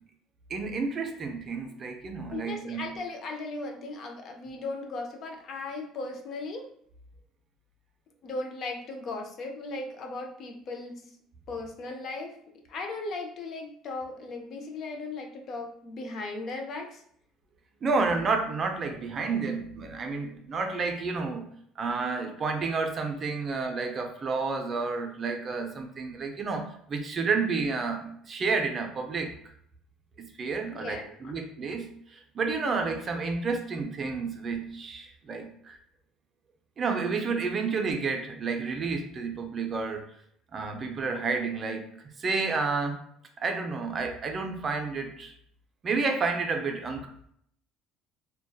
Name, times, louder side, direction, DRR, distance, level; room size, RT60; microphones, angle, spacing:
voice 1, 0.5-3.0 17.8-29.3 30.2-35.8 36.8-40.0 40.5-41.9 42.2-43.0 43.4-45.3 45.8-47.1, right 4 dB, 35° right, 4 dB, 0.4 m, -30 dB
voice 2, 2.3-6.7 8.2-11.0 11.5-12.3 12.7-17.0 30.7-31.1, left 3 dB, 50° left, 3 dB, 0.5 m, -37 dB
2.6 x 2.1 x 2.3 m, 0.66 s
supercardioid pair, 110°, 0 cm